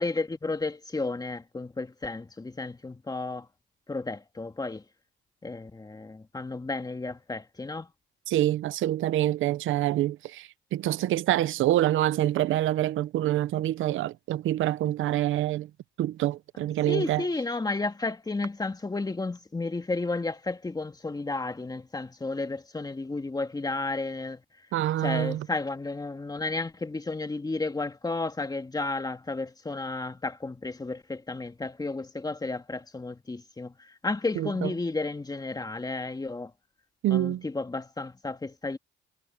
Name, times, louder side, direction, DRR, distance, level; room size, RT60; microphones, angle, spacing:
voice 1, 0.0-3.5 3.9-4.8 5.4-7.9 16.9-24.4 25.0-36.5 37.1-38.8, left 3 dB, 20° left, 2.0 m, -32 dB
voice 2, 8.3-15.7 16.0-17.2 24.7-25.5 34.4-34.7 37.0-37.4, right 13 dB, 80° right, 0.8 m, -26 dB
cardioid pair, 90°, 20 cm